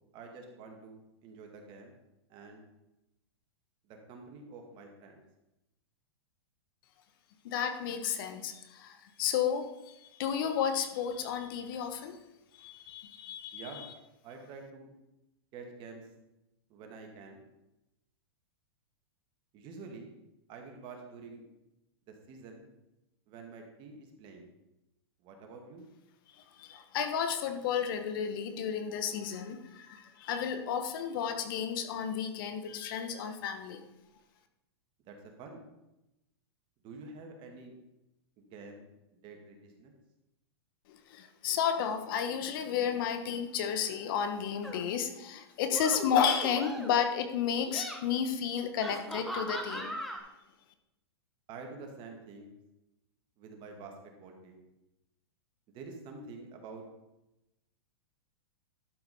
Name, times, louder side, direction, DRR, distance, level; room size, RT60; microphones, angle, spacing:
voice 1, 0.1-1.9 2.3-2.6 3.9-5.2 13.5-13.8 14.2-14.9 15.5-16.1 16.7-17.4 19.5-20.1 20.5-21.5 22.1-22.7 23.3-24.5 25.2-25.9 35.1-35.6 36.8-37.7 38.4-38.9 39.1-39.9 51.5-52.5 53.4-54.6 55.7-56.8, right 4 dB, 35° right, 3 dB, 2.0 m, -48 dB
voice 2, 7.4-12.2 12.5-13.9 26.3-33.9 40.9-50.0, left 8 dB, 55° left, 8 dB, 1.2 m, -32 dB
sound 1, 44.6-44.9 45.6-47.1 47.5-48.0 48.8-50.2, equal, ahead, 1.1 m, -39 dB
12.0 x 5.0 x 5.4 m, 0.93 s
hypercardioid pair, 140°, 14 cm